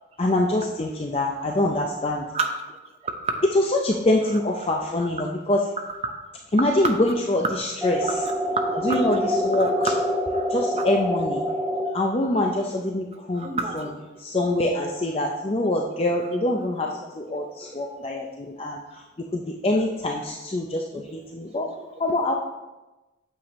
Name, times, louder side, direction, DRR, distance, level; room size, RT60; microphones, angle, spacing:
voice 1, 0.2-2.2 3.8-5.6 6.5-7.4 7.8-8.0 8.9-9.2 9.4-9.7 10.5-11.4 11.9-13.5 14.3-16.9 17.2-18.2 18.6-18.8 19.3-20.8 21.3-21.7 22.0-22.3, left 1 dB, 30° left, 0 dB, 0.5 m, -24 dB
voice 2, 5.8-6.1 6.6-7.0 8.0-8.3 8.7-9.2 9.5-9.9 10.3-10.4 10.8-11.0 12.2-12.4 13.3-13.9 16.2-16.4 17.4-17.5 20.9-21.0, right 4 dB, 35° right, 4 dB, 0.7 m, -31 dB
sound 1, 7.8-11.8, equal, 5° left, 1.6 m, -25 dB
8.7 x 6.8 x 3.1 m, 1.1 s
head